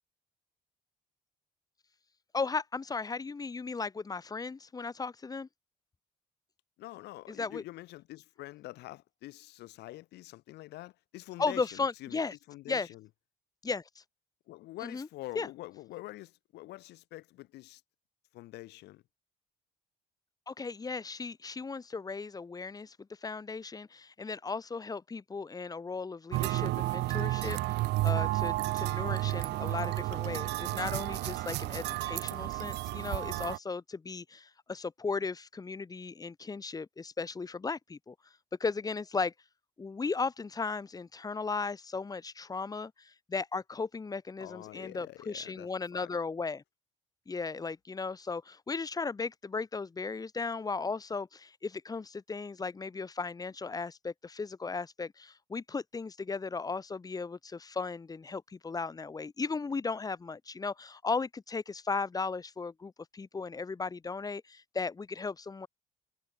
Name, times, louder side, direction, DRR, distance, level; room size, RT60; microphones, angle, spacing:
voice 1, 2.3-5.5 7.3-7.6 11.4-12.3 12.7-12.9 13.6-13.8 14.8-15.1 15.3-15.5 20.5-23.0 23.2-38.1 38.6-39.3 39.8-46.6 47.3-65.7, left 4 dB, 20° left, 1.3 m, -36 dB
voice 2, 6.8-13.1 14.5-17.8 18.3-19.0 44.4-46.1, left 17 dB, 80° left, 5.8 m, -46 dB
sound 1, 26.3-33.6, right 19 dB, 85° right, 2.4 m, -32 dB
cardioid pair, 110°, 17 cm